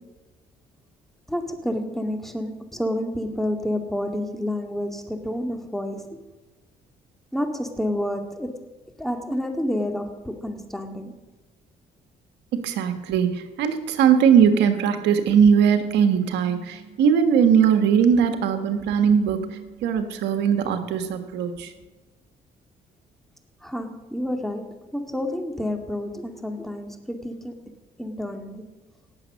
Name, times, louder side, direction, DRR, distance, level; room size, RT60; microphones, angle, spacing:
voice 1, 1.3-6.2 7.3-8.5 9.0-11.2 23.6-27.5 28.0-28.7, left 1 dB, ahead, 5 dB, 2.3 m, -29 dB
voice 2, 12.5-21.7, right 7 dB, 80° right, 8 dB, 1.5 m, -20 dB
18.0 x 7.4 x 6.5 m, 1.1 s
supercardioid pair, 70°, 17 cm